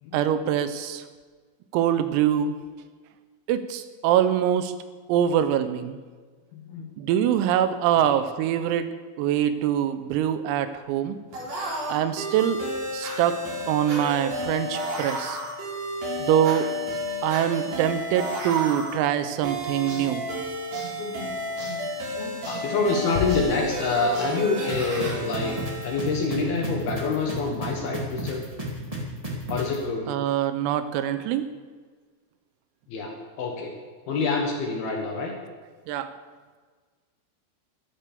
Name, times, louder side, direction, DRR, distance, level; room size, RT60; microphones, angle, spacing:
voice 1, 0.1-1.0 1.7-2.6 3.5-4.7 5.1-6.0 7.0-8.9 9.2-11.2 11.9-12.6 12.9-13.4 13.7-15.4 16.2-16.7 17.2-20.3 30.1-31.5 35.9-36.1, right 10 dB, 85° right, 11 dB, 3.6 m, -24 dB
voice 2, 6.5-6.9 8.0-8.1 17.6-17.8 20.9-28.4 29.5-30.1 32.9-33.7 34.1-35.3, left 3 dB, 65° left, 1 dB, 2.7 m, -27 dB
sound 1, 11.3-26.8, equal, 55° right, 6.0 m, -32 dB
sound 2, 23.2-24.7, left 9 dB, 85° left, 3.4 m, -34 dB
sound 3, 24.7-29.8, right 2 dB, 30° right, 0.6 m, -32 dB
12.5 x 12.0 x 6.9 m, 1.4 s
omnidirectional pair, 6.0 m